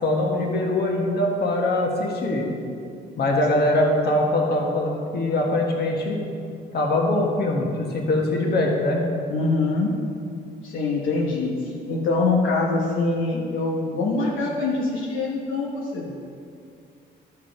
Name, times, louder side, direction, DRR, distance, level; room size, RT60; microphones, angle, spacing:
voice 1, 0.0-2.5 3.2-6.2 6.7-9.1, left 1 dB, 55° left, -1 dB, 1.6 m, -22 dB
voice 2, 9.3-9.9 10.6-16.1, left 3 dB, 80° left, -3 dB, 1.1 m, -24 dB
12.0 x 4.8 x 4.6 m, 2.4 s
cardioid pair, 90°, 20 cm